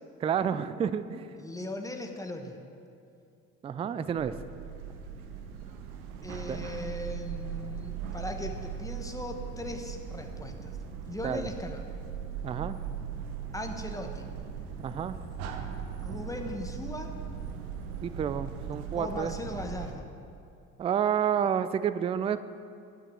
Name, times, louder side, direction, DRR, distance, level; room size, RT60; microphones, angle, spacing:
voice 1, 0.2-1.3 3.6-4.4 6.5-6.6 11.2-11.5 12.4-12.8 14.8-15.2 18.0-19.3 20.8-22.4, right 8 dB, 15° right, 13 dB, 0.3 m, -29 dB
voice 2, 1.4-2.6 6.2-10.7 11.1-11.8 13.5-14.3 16.0-17.2 19.0-20.1, left 1 dB, 10° left, 4 dB, 1.3 m, -38 dB
sound 1, 4.2-19.9, right 7 dB, 80° right, 0.9 m, -39 dB
9.1 x 6.3 x 8.2 m, 2.5 s
figure-of-eight pair, 55°, 42 cm